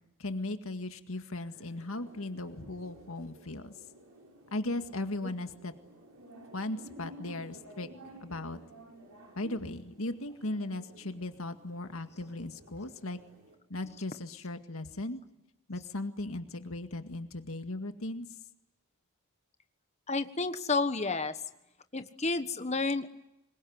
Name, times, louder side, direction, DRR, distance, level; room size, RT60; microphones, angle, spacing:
voice 1, 0.2-3.7 4.5-5.7 6.5-7.9 8.2-8.6 9.4-13.2 13.7-15.2 15.7-18.3, left 2 dB, 70° left, 7 dB, 2.0 m, -37 dB
sound 1, 1.5-13.6, right 1 dB, 85° right, 6.8 m, -53 dB
voice 2, 20.1-21.3 21.9-23.1, left 3 dB, 30° left, 10 dB, 1.3 m, -31 dB
25.5 x 22.5 x 9.6 m, 0.90 s
head